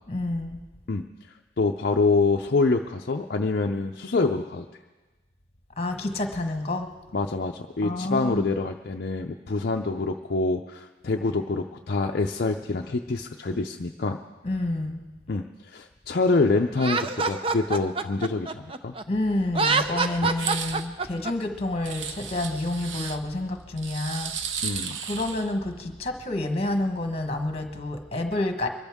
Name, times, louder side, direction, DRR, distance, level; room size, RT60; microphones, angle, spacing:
voice 1, 0.1-0.6 5.8-6.9 7.8-8.5 14.4-15.0 19.1-24.4 25.1-28.7, left 2 dB, 35° left, 5 dB, 1.3 m, -29 dB
voice 2, 1.6-4.6 7.1-14.2 15.3-18.9 20.4-20.5 24.6-25.0, left 3 dB, 55° left, 3 dB, 0.5 m, -26 dB
Laughter, 16.8-19.0 19.5-21.3, right 4 dB, 30° right, 0.5 m, -26 dB
sound 1, 20.3-20.9 21.8-23.2 23.8-25.5, right 7 dB, 90° right, 0.8 m, -34 dB
23.5 x 13.5 x 3.6 m, 1.2 s
head